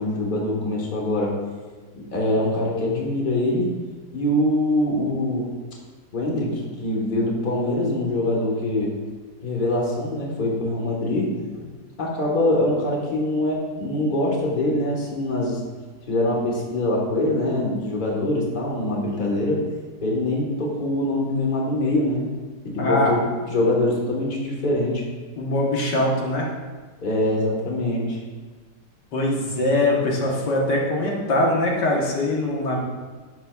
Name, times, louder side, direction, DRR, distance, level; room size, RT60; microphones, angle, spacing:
voice 1, 0.0-1.3 1.9-3.8 4.1-5.5 6.1-8.9 9.4-11.7 12.0-15.6 16.1-19.6 20.0-22.2 22.6-23.2 23.5-25.0 27.0-28.2, left 1 dB, 30° left, -3 dB, 1.3 m, -23 dB
voice 2, 22.8-23.1 25.4-26.5 29.1-32.8, left 1 dB, 80° left, -2 dB, 1.9 m, -22 dB
10.5 x 7.1 x 2.3 m, 1.4 s
omnidirectional pair, 1.8 m